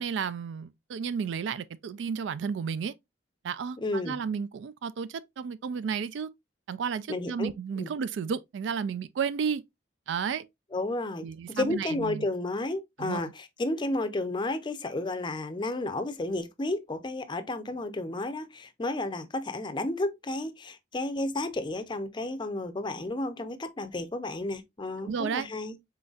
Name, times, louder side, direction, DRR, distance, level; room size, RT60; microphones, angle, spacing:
voice 1, 0.0-2.9 3.4-6.3 6.7-9.6 10.1-10.4 11.2-12.3 13.0-13.3 25.0-25.5, right 6 dB, 75° right, 0.3 m, -32 dB
voice 2, 3.8-4.2 7.1-7.5 7.8-7.9 10.7-25.8, left 2 dB, 25° left, 0.5 m, -32 dB
4.2 x 3.9 x 2.3 m
head